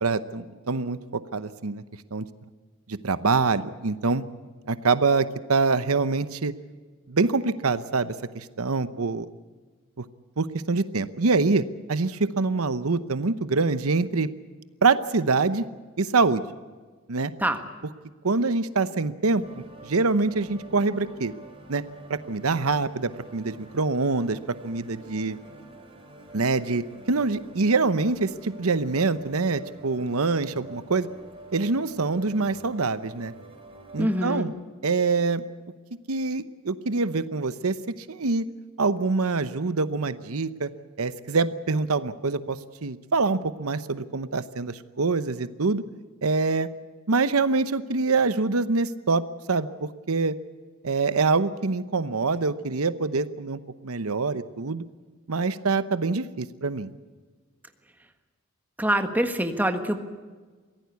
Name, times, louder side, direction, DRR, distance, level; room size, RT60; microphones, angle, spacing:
voice 1, 0.0-1.8 2.1-2.2 2.9-4.2 4.7-6.5 7.1-9.3 10.4-11.6 11.9-14.3 14.8-15.6 16.0-16.4 17.1-17.3 18.2-19.4 19.8-21.3 21.7-21.8 22.1-24.4 24.6-25.4 26.3-26.8 27.1-31.1 31.5-33.3 33.9-34.5 34.8-35.4 36.1-37.8 38.1-38.4 38.8-40.7 41.0-45.8 46.2-46.7 47.1-50.3 50.8-54.8 55.3-56.9, right 4 dB, 85° right, 13 dB, 0.9 m, -25 dB
sound 1, 19.4-34.4, right 2 dB, 25° right, 3.6 m, -47 dB
voice 2, 34.0-34.5 58.8-60.0, right 1 dB, 10° right, 6 dB, 1.5 m, -25 dB
23.5 x 16.5 x 8.4 m, 1.4 s
head